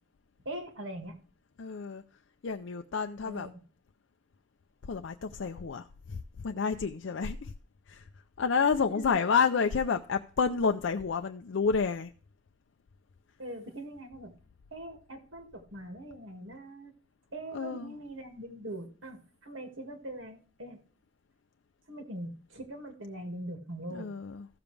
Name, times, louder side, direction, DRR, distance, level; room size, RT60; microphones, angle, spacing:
voice 1, 0.5-1.2 3.2-3.6 8.8-9.1 13.4-14.3 14.7-16.9 17.3-20.8 21.9-24.1, right 1 dB, 70° right, 2.0 m, -42 dB
voice 2, 1.6-2.0 2.4-3.5 4.8-7.5 7.9-8.1 8.4-12.1 17.5-17.9 23.9-24.5, left 5 dB, 65° left, 0.4 m, -30 dB
15.0 x 7.0 x 3.3 m
head